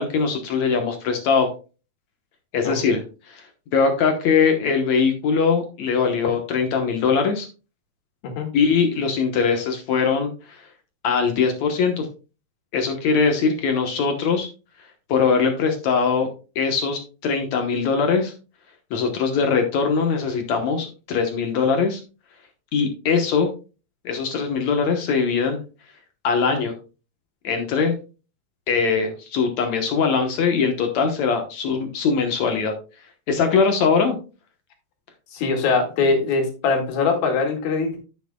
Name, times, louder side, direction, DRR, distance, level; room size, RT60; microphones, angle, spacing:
voice 1, 0.0-1.5 2.5-3.0 3.3-3.4 3.7-7.5 8.5-10.6 11.0-12.1 12.7-14.5 15.1-16.3 16.6-18.3 18.9-22.0 22.7-23.5 24.1-25.6 26.2-26.8 27.4-28.0 28.7-32.7 33.3-34.2, left 5 dB, 65° left, 5 dB, 2.1 m, -21 dB
voice 2, 35.3-38.0, left 4 dB, 85° left, 2 dB, 3.9 m, -22 dB
10.0 x 9.6 x 2.3 m, 0.32 s
omnidirectional pair, 4.1 m